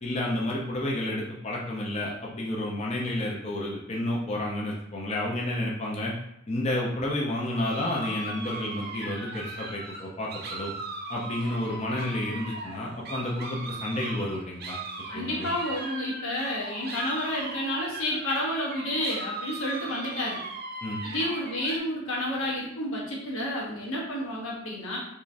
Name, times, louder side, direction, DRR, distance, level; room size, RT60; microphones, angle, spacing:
voice 1, 0.0-6.1 6.5-10.7 11.1-14.8 15.1-15.5 20.8-21.0, left 1 dB, 30° left, -4 dB, 0.6 m, -30 dB
sound 1, 7.5-21.8, right 2 dB, 50° right, 0.6 m, -38 dB
voice 2, 15.1-20.4 21.0-25.0, left 1 dB, 85° left, -3 dB, 1.1 m, -30 dB
3.7 x 3.0 x 2.6 m, 0.77 s
head